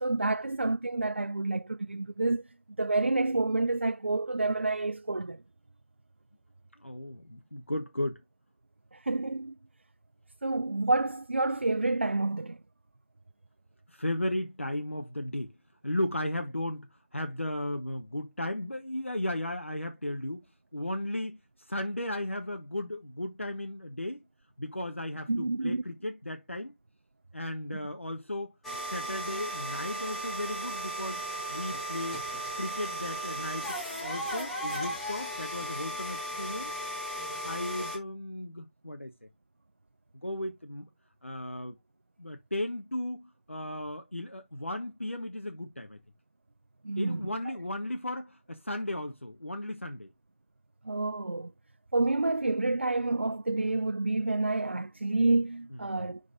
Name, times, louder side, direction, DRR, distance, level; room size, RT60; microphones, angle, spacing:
voice 1, 0.0-2.4 2.8-5.4 8.9-9.6 10.4-12.6 25.3-25.8 46.8-47.2 50.9-51.5 51.9-56.2, right 2 dB, 65° right, 0.5 m, -28 dB
voice 2, 6.8-8.2 13.9-15.5 15.8-16.9 17.1-20.4 20.7-24.2 24.6-26.7 27.3-28.5 28.9-32.2 32.6-36.7 37.4-39.1 40.2-40.9 41.2-41.8 42.2-46.0 47.0-50.1 55.7-55.8, left 1 dB, 80° left, 1.2 m, -35 dB
sound 1, 28.6-38.0, right 1 dB, ahead, 0.6 m, -36 dB
11.0 x 4.1 x 2.6 m
figure-of-eight pair, 165°, 7 cm